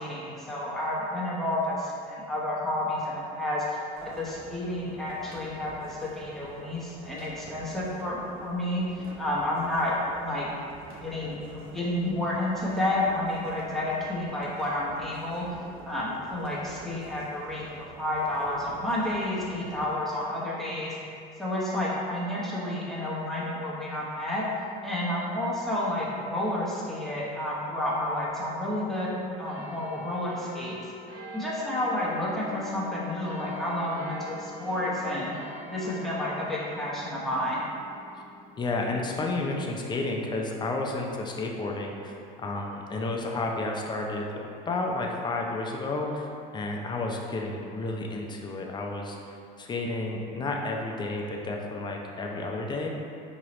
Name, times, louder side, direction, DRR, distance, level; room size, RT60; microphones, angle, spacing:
voice 1, 0.0-10.5 10.7-15.5 15.9-17.7 18.0-21.0 21.4-24.4 24.8-30.8 31.3-35.3 35.6-37.6, left 1 dB, ahead, -8 dB, 1.0 m, -30 dB
sound 1, 3.9-19.9, right 2 dB, 45° right, 0.8 m, -48 dB
sound 2, 29.5-42.3 43.0-43.1, equal, 70° right, 1.1 m, -44 dB
voice 2, 38.6-52.9, left 2 dB, 20° left, 0 dB, 0.5 m, -31 dB
4.6 x 2.9 x 3.1 m, 2.5 s
supercardioid pair, 105°, 21 cm